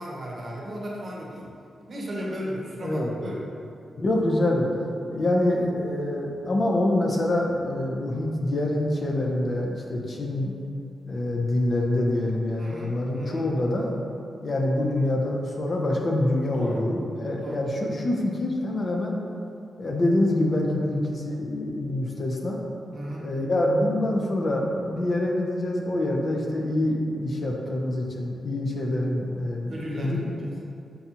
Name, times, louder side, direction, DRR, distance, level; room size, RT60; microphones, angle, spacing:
voice 1, 0.0-1.5 1.9-3.4 10.0-10.1 12.6-13.5 16.6-16.8 17.4-17.6 22.9-23.3 29.7-30.5, equal, 50° right, -3 dB, 0.8 m, -35 dB
voice 2, 2.8-3.1 4.0-4.7 5.1-10.5 11.1-13.9 14.4-19.2 19.8-22.6 23.2-30.2, left 1 dB, 50° left, -1 dB, 0.6 m, -25 dB
5.4 x 2.3 x 2.8 m, 2.6 s
cardioid pair, 70°, 0 cm